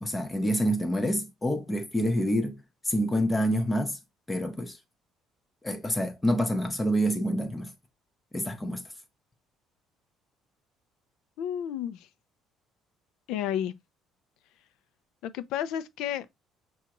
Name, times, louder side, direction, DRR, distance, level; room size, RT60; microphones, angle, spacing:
voice 1, 0.0-4.0 4.3-4.8 5.6-7.7 8.3-8.8, equal, 10° left, 0.6 m, -27 dB
voice 2, 11.4-12.1 13.3-13.7 15.2-16.3, left 10 dB, 70° left, 0.5 m, -31 dB
7.0 x 2.4 x 2.9 m
cardioid pair, 175°, 0 cm